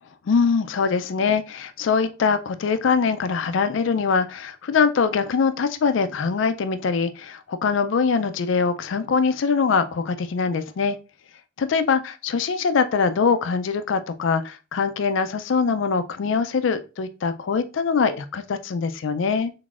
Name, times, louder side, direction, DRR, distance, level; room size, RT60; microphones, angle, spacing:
voice 1, 0.3-11.0 11.6-19.5, left 5 dB, 75° left, 0.4 m, -23 dB
3.8 x 3.5 x 2.4 m
head